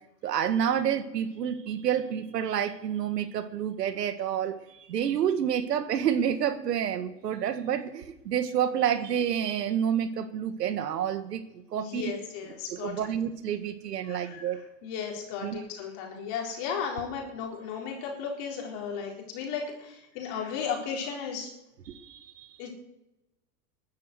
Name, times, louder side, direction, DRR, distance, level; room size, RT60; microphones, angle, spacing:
voice 1, 0.2-12.1 12.7-14.6 15.4-15.6 21.9-22.7, right 9 dB, 85° right, 11 dB, 1.8 m, -29 dB
voice 2, 11.7-13.1 14.1-14.5 14.8-21.5 22.6-22.7, left 6 dB, 50° left, 0 dB, 4.2 m, -35 dB
13.0 x 10.5 x 8.0 m, 0.93 s
hypercardioid pair, 120°, 47 cm